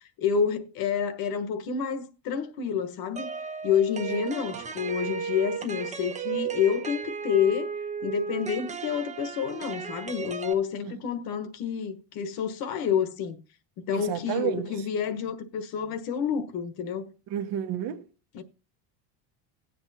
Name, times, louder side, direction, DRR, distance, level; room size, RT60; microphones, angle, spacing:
voice 1, 0.2-3.3 3.6-7.7 8.0-13.4 13.8-17.1 18.3-18.4, left 7 dB, 55° left, 1.3 m, -28 dB
sound 1, 3.2-10.5, right 6 dB, 15° right, 0.7 m, -34 dB
voice 2, 13.9-14.7 17.3-18.0, right 11 dB, 55° right, 1.2 m, -31 dB
17.5 x 8.0 x 2.7 m
cardioid pair, 140°, 42 cm